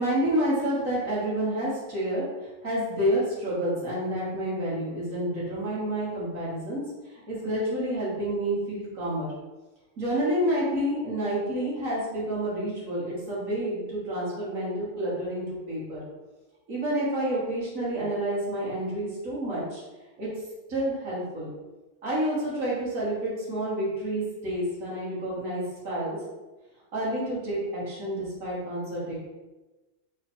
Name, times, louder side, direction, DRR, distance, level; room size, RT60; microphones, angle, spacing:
voice 1, 0.0-6.8 7.1-9.3 10.0-16.0 16.7-19.8 20.2-20.3 20.7-21.5 22.0-26.2 26.9-29.2, right 1 dB, 90° right, -8 dB, 2.2 m, -29 dB
4.5 x 4.2 x 2.8 m, 1.1 s
omnidirectional pair, 1.4 m